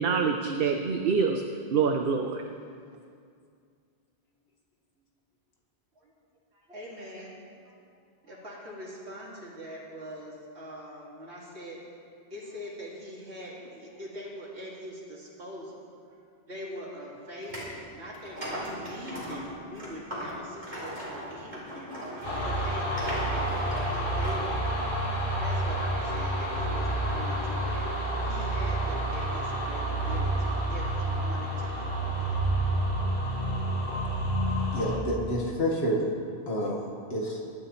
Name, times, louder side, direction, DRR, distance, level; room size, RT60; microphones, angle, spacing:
voice 1, 0.0-1.4 1.7-2.4, right 5 dB, 60° right, 4 dB, 0.9 m, -25 dB
voice 2, 6.5-7.4 7.6-8.0 8.2-11.8 12.3-16.2 16.5-23.7 23.9-24.7 25.4-32.4, equal, 85° right, -5 dB, 2.7 m, -43 dB
sound 1, 17.4-17.7 18.1-24.5, equal, 45° right, 4.4 m, -38 dB
sound 2, 22.2-35.0, right 1 dB, 50° left, 2.7 m, -29 dB
voice 3, 34.7-36.1 36.5-36.8 37.1-37.4, equal, 70° left, -2 dB, 2.0 m, -28 dB
24.0 x 11.5 x 3.2 m, 2.3 s
omnidirectional pair, 1.1 m